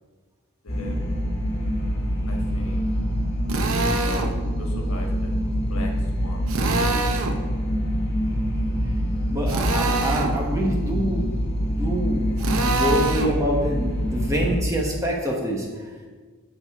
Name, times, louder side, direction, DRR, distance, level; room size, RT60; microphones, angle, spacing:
voice 1, 0.6-1.0 2.3-2.8 3.8-5.4 5.6-6.5, left 1 dB, 80° left, 1 dB, 1.5 m, -38 dB
sound 1, 0.7-14.5, equal, 45° left, 2.2 m, -25 dB
Drill, 3.5-4.3 6.5-7.4 9.5-10.4 12.4-13.4, right 3 dB, 70° right, 0.7 m, -25 dB
voice 2, 9.3-11.4 11.8-15.7, equal, 15° right, -1 dB, 1.2 m, -26 dB
13.0 x 5.0 x 3.6 m, 1.4 s
head